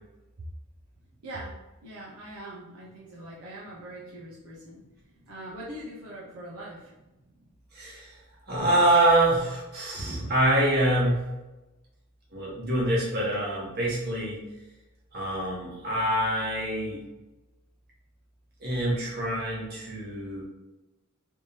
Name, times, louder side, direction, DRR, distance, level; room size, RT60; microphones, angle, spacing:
voice 1, 1.2-4.8 5.3-6.9, right 1 dB, 80° right, -6 dB, 0.8 m, -42 dB
voice 2, 7.7-8.1 8.5-11.3 12.3-14.4 15.1-17.0 18.6-20.4, right 1 dB, 45° right, -5 dB, 1.2 m, -25 dB
3.5 x 3.2 x 2.8 m, 1.0 s
head